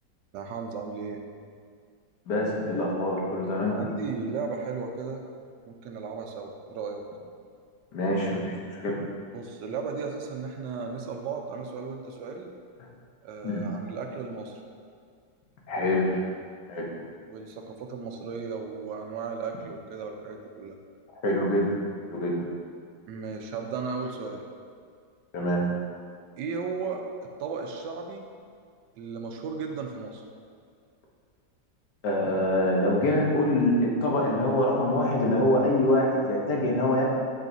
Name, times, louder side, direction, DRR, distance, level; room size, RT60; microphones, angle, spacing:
voice 1, 0.3-1.2 3.6-5.3 5.7-7.0 9.3-12.5 13.2-14.6 17.3-20.8 23.1-24.4 26.4-27.1 27.4-28.3 28.9-30.2, right 5 dB, 80° right, 3 dB, 1.3 m, -35 dB
voice 2, 2.3-3.8 7.9-8.9 13.4-13.6 15.7-16.2 16.7-16.9 21.2-21.7 22.0-22.3 25.3-25.6 32.0-37.1, left 1 dB, 70° left, -2 dB, 1.6 m, -25 dB
7.3 x 6.5 x 2.6 m, 2.1 s
omnidirectional pair, 1.9 m